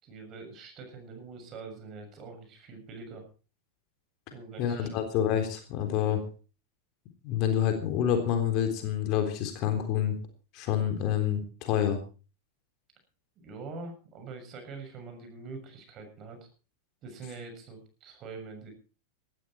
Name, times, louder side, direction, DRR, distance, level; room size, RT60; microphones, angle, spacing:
voice 1, 0.0-3.3 4.3-5.0 13.4-16.4 17.0-18.7, right 4 dB, 35° right, 6 dB, 7.0 m, -44 dB
voice 2, 4.6-6.2 7.2-10.1 10.5-12.0, left 9 dB, 40° left, 6 dB, 3.6 m, -27 dB
18.5 x 13.5 x 4.5 m, 0.36 s
figure-of-eight pair, 90°, 0 cm